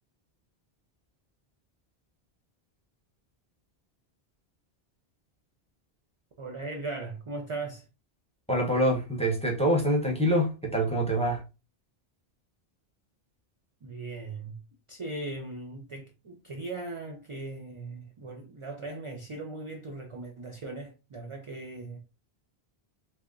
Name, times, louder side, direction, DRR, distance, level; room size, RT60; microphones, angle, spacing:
voice 1, 6.4-7.9 13.8-14.6 14.9-22.0, right 3 dB, 45° right, 0.4 m, -38 dB
voice 2, 8.5-11.4, right 1 dB, 5° left, 0.7 m, -25 dB
3.4 x 2.9 x 2.5 m
omnidirectional pair, 1.1 m